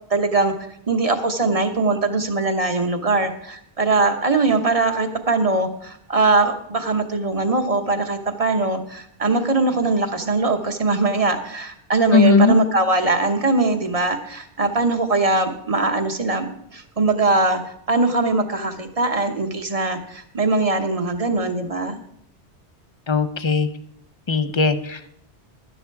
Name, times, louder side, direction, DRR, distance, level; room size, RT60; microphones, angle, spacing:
voice 1, 0.1-0.5 0.9-17.6 17.9-22.0, right 3 dB, 35° right, 6 dB, 1.1 m, -21 dB
voice 2, 12.1-12.6 23.1-23.7 24.3-25.1, left 4 dB, 30° left, 11 dB, 0.6 m, -18 dB
12.0 x 10.0 x 4.7 m, 0.73 s
omnidirectional pair, 1.1 m